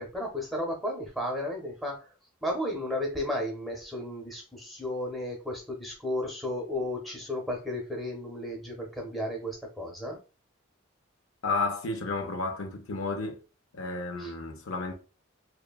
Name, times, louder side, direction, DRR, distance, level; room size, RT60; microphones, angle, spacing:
voice 1, 0.0-2.0 2.4-10.2 14.2-14.3, left 1 dB, ahead, 0.6 m, -33 dB
voice 2, 11.4-13.4 13.7-14.9, left 3 dB, 85° left, 0.5 m, -32 dB
2.9 x 2.1 x 2.2 m
head